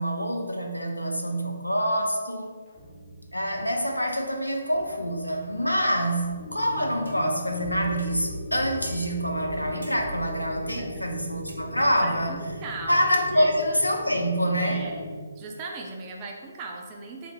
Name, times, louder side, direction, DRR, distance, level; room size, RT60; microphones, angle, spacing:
voice 1, 0.0-2.5 3.3-12.5 12.9-14.9, equal, 85° left, 2 dB, 0.5 m, -26 dB
sound 1, 2.7-13.9, right 1 dB, 5° left, 0.8 m, -44 dB
sound 2, 4.4-4.7 6.0-6.2 7.0-7.5 8.0-8.3 8.8-9.4 9.8-10.3 10.7-10.9 11.5-11.6, right 1 dB, 75° right, 0.7 m, -51 dB
sound 3, 6.4-15.2, left 1 dB, 40° left, 0.6 m, -38 dB
voice 2, 12.0-13.0 13.3-13.5 14.6-15.0 15.4-17.3, right 3 dB, 25° right, 1 dB, 0.5 m, -38 dB
2.9 x 2.5 x 4.1 m, 1.5 s
figure-of-eight pair, 140°, 0 cm